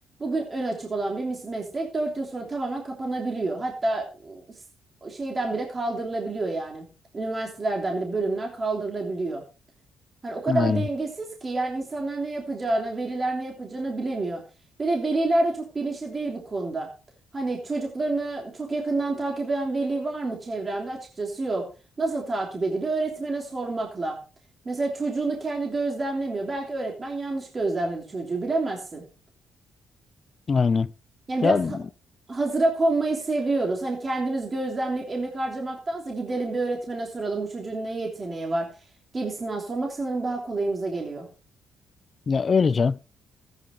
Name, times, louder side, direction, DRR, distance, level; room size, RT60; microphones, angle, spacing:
voice 1, 0.2-4.4 5.0-6.8 7.1-9.4 10.2-14.4 14.8-16.9 17.3-21.7 22.0-24.2 24.6-29.0 31.3-31.8 32.3-38.7 39.1-41.3, right 2 dB, 30° right, 3.1 m, -28 dB
voice 2, 10.5-10.8 30.5-30.9 31.4-31.7 42.3-43.0, left 5 dB, 40° left, 0.5 m, -21 dB
14.0 x 9.8 x 3.8 m
cardioid pair, 90°, 0 cm